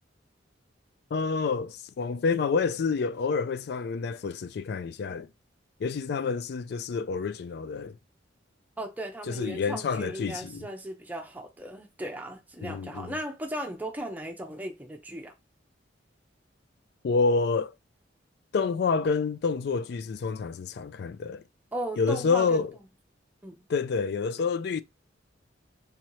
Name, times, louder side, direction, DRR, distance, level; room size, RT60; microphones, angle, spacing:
voice 1, 1.1-5.3 5.8-8.0 9.3-10.7 12.6-13.2 17.0-17.7 18.5-21.4 22.0-22.7 23.7-24.8, left 4 dB, 55° left, 0.3 m, -28 dB
voice 2, 8.8-15.3 21.7-22.7 23.4-23.6, right 1 dB, 10° right, 0.8 m, -37 dB
4.2 x 3.6 x 3.1 m
head